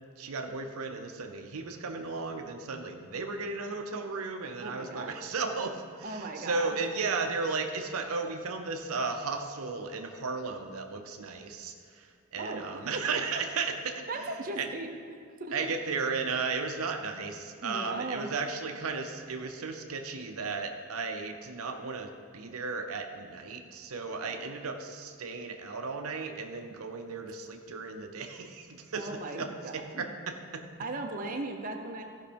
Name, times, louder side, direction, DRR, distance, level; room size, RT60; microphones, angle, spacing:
voice 1, 0.2-14.3 14.6-14.7 15.5-30.7, right 4 dB, 80° right, 5 dB, 0.7 m, -35 dB
voice 2, 4.6-5.1 6.0-6.7 12.4-12.6 14.1-14.9 15.4-15.5 17.6-18.3 24.2-24.5 28.9-30.0 30.8-32.0, right 2 dB, 40° right, 2 dB, 0.8 m, -37 dB
14.0 x 5.5 x 5.1 m, 2.2 s
head